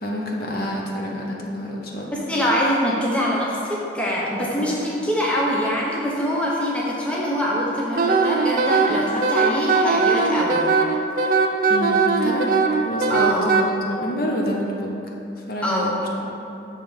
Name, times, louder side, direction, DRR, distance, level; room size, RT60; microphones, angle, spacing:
voice 1, 0.0-2.2 4.5-4.8 11.7-12.5 12.8-14.9 15.5-16.3, equal, 50° left, -2 dB, 0.7 m, -28 dB
voice 2, 2.1-10.9 13.1-13.5 15.6-16.0, equal, 5° left, -5 dB, 0.7 m, -24 dB
Wind instrument woodwind instrument, 8.0-13.6, right 4 dB, 45° right, 0.4 m, -19 dB
6.6 x 3.4 x 5.5 m, 2.8 s
head